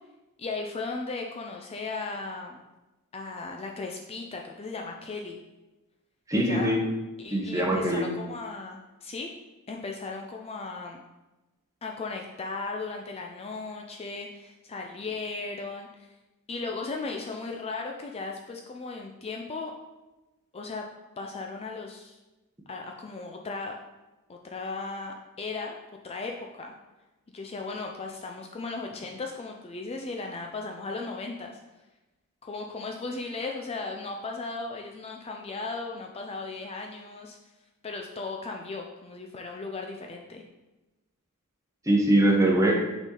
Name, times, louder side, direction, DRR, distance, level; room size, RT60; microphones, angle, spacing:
voice 1, 0.4-2.6 3.1-5.4 6.3-6.7 7.2-9.3 9.7-11.0 11.8-16.1 16.5-19.7 20.5-20.9 21.2-22.2 22.7-23.8 24.3-25.8 26.0-26.8 27.3-31.6 32.4-37.4 37.8-40.4, left 3 dB, 25° left, 2 dB, 0.4 m, -36 dB
voice 2, 6.3-6.8 7.3-8.1 41.9-42.7, right 1 dB, 15° right, 0 dB, 0.9 m, -22 dB
5.9 x 4.2 x 3.8 m, 1.1 s
head